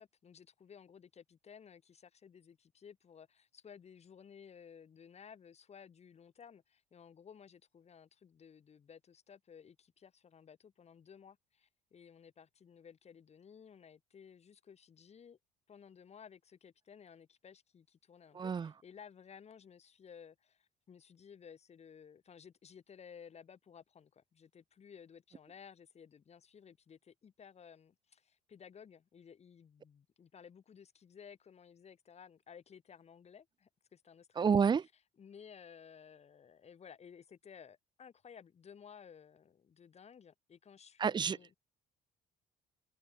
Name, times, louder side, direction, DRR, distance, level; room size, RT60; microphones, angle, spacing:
voice 1, 0.0-15.4 15.7-34.6 35.2-41.5, left 7 dB, 40° left, 3.5 m, -56 dB
voice 2, 18.3-18.7 34.4-34.8 41.0-41.4, right 6 dB, 25° right, 0.7 m, -29 dB
cardioid pair, 110°, 17 cm